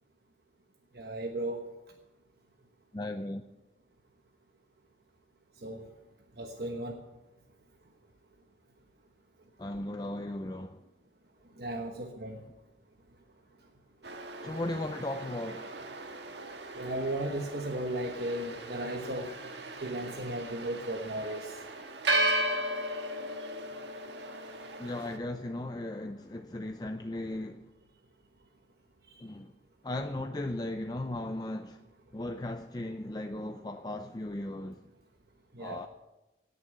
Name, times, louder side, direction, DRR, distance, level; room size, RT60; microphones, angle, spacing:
voice 1, 0.9-1.6 5.6-5.8 6.4-6.9 11.6-12.4 16.7-19.3 19.8-21.5 35.5-35.8, right 1 dB, 60° right, 1.3 m, -35 dB
voice 2, 2.9-3.4 9.6-10.8 14.4-15.7 24.8-27.6 29.2-29.5 29.8-31.8 32.1-34.8 35.6-35.9, left 1 dB, 20° left, 0.5 m, -36 dB
sound 1, 14.0-25.2, right 1 dB, 85° right, 1.5 m, -36 dB
18.0 x 6.8 x 8.0 m
head